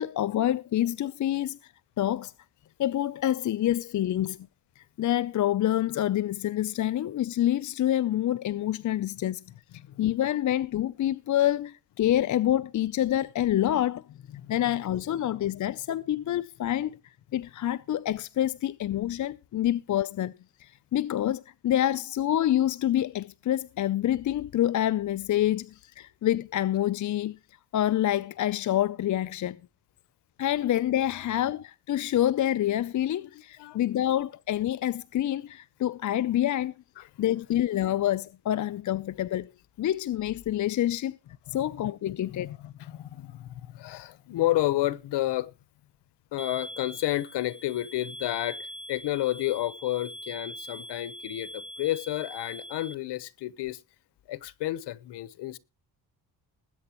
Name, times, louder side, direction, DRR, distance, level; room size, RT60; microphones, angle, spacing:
voice 1, 0.0-1.7 2.0-2.3 2.8-4.4 4.8-9.4 10.0-14.0 14.5-17.0 17.3-20.3 20.6-27.4 27.7-29.6 30.4-36.7 37.0-39.5 39.8-41.2 41.5-42.5, left 12 dB, 45° left, 0.6 m, -27 dB
voice 2, 33.6-34.0 37.0-37.1 41.5-41.6 42.3-45.5 46.3-53.8 54.3-55.6, left 15 dB, 85° left, 1.1 m, -31 dB
sound 1, 46.4-52.9, equal, 10° left, 1.0 m, -42 dB
20.5 x 9.0 x 3.0 m
cardioid pair, 120°, 40 cm